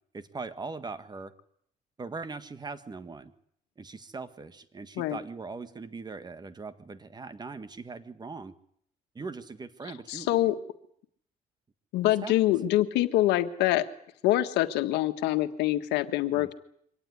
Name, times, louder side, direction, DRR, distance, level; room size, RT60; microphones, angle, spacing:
voice 1, 0.1-1.3 2.0-3.3 3.8-8.6 9.1-10.5 12.0-12.5 16.3-16.5, right 4 dB, 25° right, 12 dB, 1.7 m, -40 dB
voice 2, 10.1-10.5 11.9-13.9 14.2-16.5, left 15 dB, 90° left, 9 dB, 1.6 m, -25 dB
24.0 x 18.0 x 9.8 m, 0.69 s
cardioid pair, 110°, 17 cm